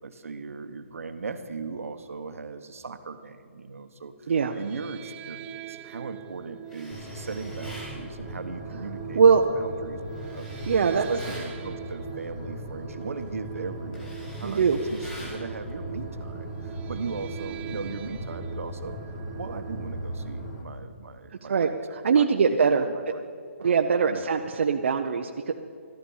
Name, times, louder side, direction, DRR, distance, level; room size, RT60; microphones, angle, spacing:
voice 1, 0.0-10.0 10.3-10.5 10.8-19.0 19.4-23.2 24.0-24.4, right 4 dB, 80° right, 9 dB, 1.2 m, -38 dB
voice 2, 4.3-4.6 9.1-9.4 10.7-11.1 14.4-14.8 21.5-22.8 23.6-25.5, right 6 dB, 55° right, 4 dB, 0.7 m, -22 dB
sound 1, 4.5-20.6, right 11 dB, 15° right, 0.5 m, -43 dB
Tools, 6.7-7.9 10.1-11.5 13.0-13.2 13.6-15.4, equal, 10° left, 4.2 m, -45 dB
sound 2, 6.9-20.6, equal, 30° left, 2.0 m, -38 dB
14.5 x 13.0 x 5.6 m, 2.3 s
hypercardioid pair, 165°, 7 cm